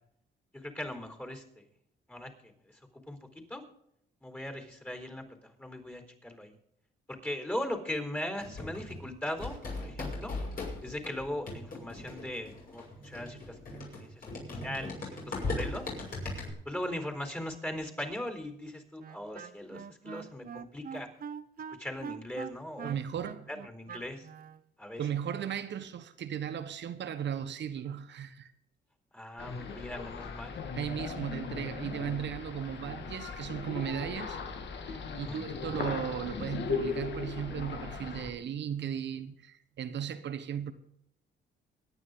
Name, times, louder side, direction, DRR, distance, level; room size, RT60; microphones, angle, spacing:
voice 1, 0.5-1.6 2.1-3.2 3.5-3.6 4.2-5.3 5.6-6.6 7.1-10.3 10.8-13.6 14.0-14.2 14.6-15.9 16.6-21.1 21.8-23.0 23.5-24.3 24.8-25.0 29.1-30.6 35.1-35.4, left 1 dB, 10° left, 4.1 m, -39 dB
sound 1, 8.4-16.5, left 2 dB, 45° left, 6.4 m, -39 dB
Wind instrument woodwind instrument, 19.0-24.6, right 7 dB, 45° right, 0.9 m, -43 dB
voice 2, 22.8-23.5 25.0-28.5 30.7-34.4 34.9-40.7, right 9 dB, 65° right, 1.4 m, -36 dB
sound 2, 29.4-38.3, left 5 dB, 60° left, 2.2 m, -38 dB
24.0 x 9.6 x 3.9 m
cardioid pair, 90°, 20 cm